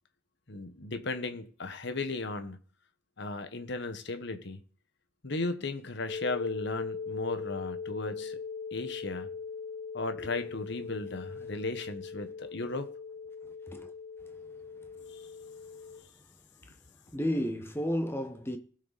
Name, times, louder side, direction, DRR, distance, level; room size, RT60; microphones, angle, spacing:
voice 1, 0.5-2.6 3.2-4.6 5.2-8.4 8.7-9.3 9.9-12.9, left 3 dB, 55° left, 1.3 m, -36 dB
sound 1, 6.1-16.0, left 5 dB, 30° left, 6.2 m, -40 dB
voice 2, 13.4-13.9 16.6-16.7 17.1-18.6, equal, 10° left, 1.2 m, -33 dB
19.0 x 6.6 x 4.2 m
head